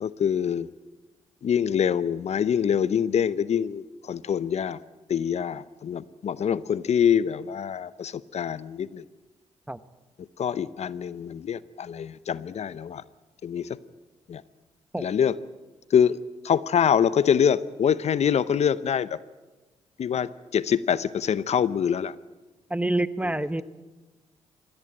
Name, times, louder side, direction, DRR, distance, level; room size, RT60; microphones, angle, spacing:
voice 1, 0.0-0.7 1.4-4.8 5.1-9.0 10.4-13.0 13.4-13.7 14.3-14.4 15.0-15.4 15.9-16.2 16.4-19.2 20.0-22.1 23.2-23.6, left 8 dB, 60° left, 17 dB, 0.7 m, -25 dB
voice 2, 22.7-23.6, right 1 dB, 10° right, 14 dB, 1.0 m, -27 dB
21.0 x 16.5 x 8.9 m, 1.2 s
supercardioid pair, 55°, 13 cm